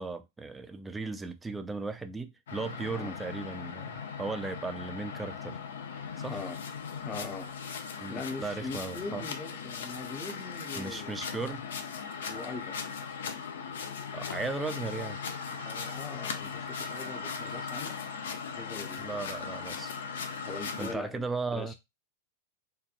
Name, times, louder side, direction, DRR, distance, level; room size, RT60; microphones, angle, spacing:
voice 1, 0.0-5.6 6.2-6.4 8.0-9.2 10.8-11.7 14.1-15.2 19.0-19.9 20.8-21.7, right 3 dB, 15° right, 0.4 m, -36 dB
sound 1, 2.5-20.9, left 6 dB, 75° left, 0.5 m, -38 dB
voice 2, 7.0-7.5 8.1-11.2 12.3-12.8 15.5-18.0 18.5-19.4 20.4-21.2 21.5-21.7, left 3 dB, 25° left, 0.7 m, -41 dB
2.9 x 2.1 x 2.4 m
hypercardioid pair, 105°, 0 cm